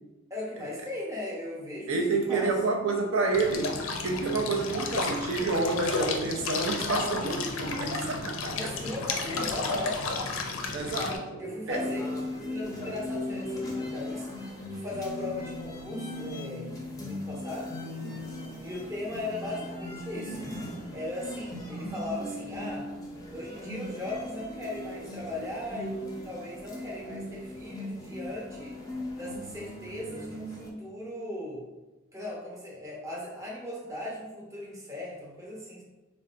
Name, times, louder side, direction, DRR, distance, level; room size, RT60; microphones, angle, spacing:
voice 1, 0.3-2.5 8.5-10.0 11.4-17.7 18.6-20.5 20.9-22.9 23.3-28.8 29.2-31.6 32.1-35.8, left 1 dB, 15° right, -4 dB, 0.7 m, -38 dB
voice 2, 1.9-3.8 4.0-8.7 10.7-11.4 11.7-11.9, right 3 dB, 75° right, 1 dB, 0.4 m, -29 dB
sound 1, 3.3-11.2, left 3 dB, 85° left, 0.4 m, -32 dB
sound 2, 11.7-30.7, left 1 dB, 20° left, 0.5 m, -38 dB
3.8 x 2.2 x 2.4 m, 1.1 s
head